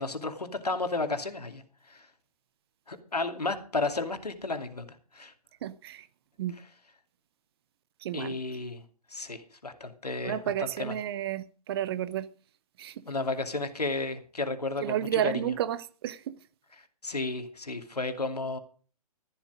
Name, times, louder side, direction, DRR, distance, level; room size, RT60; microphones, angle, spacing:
voice 1, 0.0-1.6 1.9-2.1 2.9-4.9 5.1-5.3 8.1-8.8 9.1-10.9 13.1-15.3 17.0-18.6, left 3 dB, 80° left, 2.7 m, -33 dB
voice 2, 5.6-6.1 6.4-6.6 8.0-8.4 10.2-12.3 12.8-13.0 14.8-16.4, right 11 dB, 40° right, 1.0 m, -31 dB
14.0 x 12.0 x 5.0 m
figure-of-eight pair, 125°, 20 cm